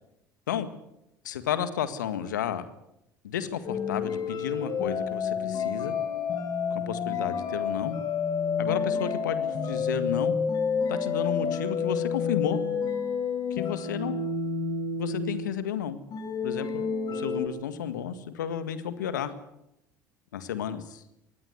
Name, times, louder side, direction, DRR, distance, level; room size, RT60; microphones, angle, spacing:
voice 1, 1.2-2.6 3.2-5.9 6.7-7.9 8.6-10.3 10.9-12.6 13.5-14.2 15.0-16.0 16.4-16.8 17.1-19.3 20.3-21.0, left 9 dB, 80° left, 12 dB, 1.8 m, -32 dB
sound 1, 3.7-15.6 16.1-17.5, left 5 dB, 45° left, 4.9 m, -29 dB
24.0 x 19.0 x 8.1 m, 0.82 s
hypercardioid pair, 65°, 10 cm